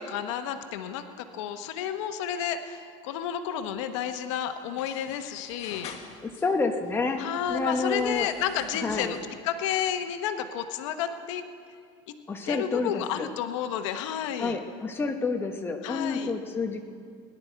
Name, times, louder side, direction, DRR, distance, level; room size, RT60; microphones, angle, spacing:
voice 1, 0.0-5.9 7.2-9.2 9.4-11.4 12.5-14.6 15.8-16.3, left 9 dB, 90° left, 8 dB, 1.0 m, -31 dB
sound 1, 3.6-6.5 6.8-9.4, left 7 dB, 45° left, 1.4 m, -48 dB
voice 2, 6.2-8.3 8.7-9.2 12.3-13.3 14.4-16.8, left 4 dB, 15° left, 4 dB, 1.1 m, -29 dB
21.0 x 11.5 x 4.6 m, 2.4 s
supercardioid pair, 135°, 15 cm